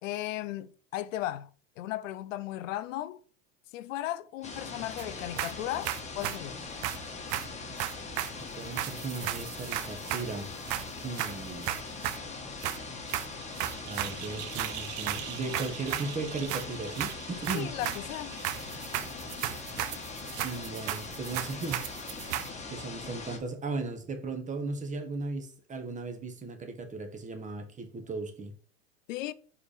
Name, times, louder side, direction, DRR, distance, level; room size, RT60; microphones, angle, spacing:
voice 1, 0.0-1.5 1.8-3.2 3.7-6.6 17.5-18.4 29.1-29.3, left 14 dB, 80° left, 0.7 m, -36 dB
sound 1, 4.4-23.4, left 4 dB, 20° left, 1.5 m, -41 dB
sound 2, 5.0-5.1 5.4-6.4 6.8-8.4 8.8-10.3 10.7-12.3 12.6-12.8 13.1-22.5, right 13 dB, 50° right, 0.7 m, -35 dB
voice 2, 8.6-10.5 11.0-11.7 13.8-17.7 20.4-21.8 22.7-28.5, right 3 dB, 20° right, 1.3 m, -36 dB
4.9 x 4.9 x 5.0 m
supercardioid pair, 115°, 38 cm